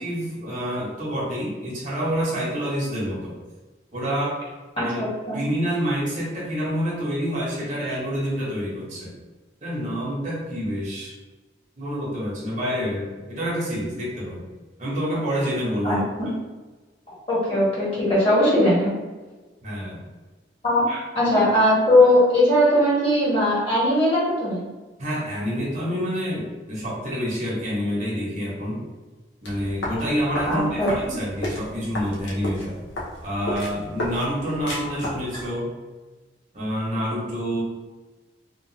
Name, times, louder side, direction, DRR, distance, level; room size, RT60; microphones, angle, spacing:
voice 1, 0.0-3.4 3.9-4.4 4.8-5.0 5.3-9.1 9.6-11.2 11.8-14.4 14.8-16.0 19.6-20.0 20.9-21.0 25.0-28.8 29.4-32.8 33.2-35.7 36.5-37.6, equal, 45° right, -5 dB, 0.9 m, -27 dB
voice 2, 4.8-5.4 15.8-16.3 17.1-18.9 20.6-20.8 21.1-24.7 30.5-31.2, left 1 dB, 30° left, -7 dB, 1.1 m, -20 dB
sound 1, 29.4-35.5, left 1 dB, 85° left, 0.8 m, -33 dB
2.9 x 2.4 x 2.7 m, 1.3 s
head